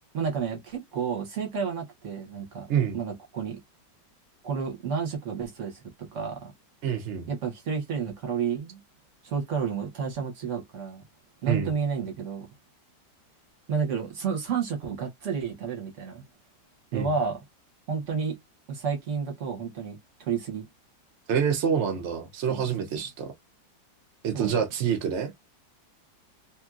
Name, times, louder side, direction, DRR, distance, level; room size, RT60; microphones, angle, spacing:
voice 1, 0.1-2.7 2.9-3.6 4.4-6.5 7.3-8.8 9.2-11.0 11.4-12.5 13.7-16.2 16.9-17.4 17.9-18.4 18.7-20.6 22.5-22.6 24.3-24.5, right 6 dB, 50° right, 1.1 m, -31 dB
voice 2, 6.8-7.3 11.5-11.7 16.9-17.1 21.3-23.3 24.2-25.3, right 7 dB, 75° right, 0.6 m, -27 dB
2.9 x 2.7 x 2.4 m
omnidirectional pair, 2.1 m